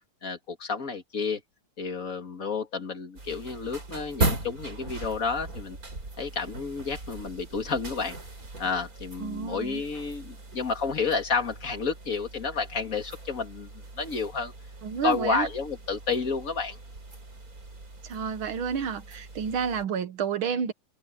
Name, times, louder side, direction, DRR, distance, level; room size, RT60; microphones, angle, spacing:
voice 1, 0.2-1.4 1.8-5.8 6.2-8.2 8.6-14.5 15.0-16.8, left 5 dB, 40° left, 2.6 m, -30 dB
sound 1, 3.2-19.8, right 2 dB, 45° right, 4.7 m, -38 dB
voice 2, 9.2-9.8 14.8-15.5 18.0-20.7, right 7 dB, 80° right, 2.1 m, -30 dB
omnidirectional pair, 2.2 m